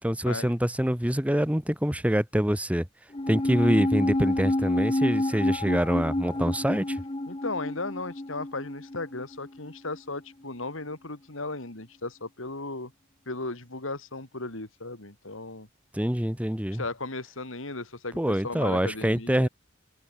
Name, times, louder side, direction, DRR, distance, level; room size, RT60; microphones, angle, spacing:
voice 1, 0.0-2.9 3.3-7.0 15.9-16.8 18.1-19.5, equal, 5° right, 1.7 m, -25 dB
sound 1, 3.1-9.7 10.0-10.1, left 1 dB, 25° left, 1.1 m, -28 dB
voice 2, 7.3-12.9 13.3-15.7 16.7-19.5, left 2 dB, 70° left, 3.3 m, -36 dB
head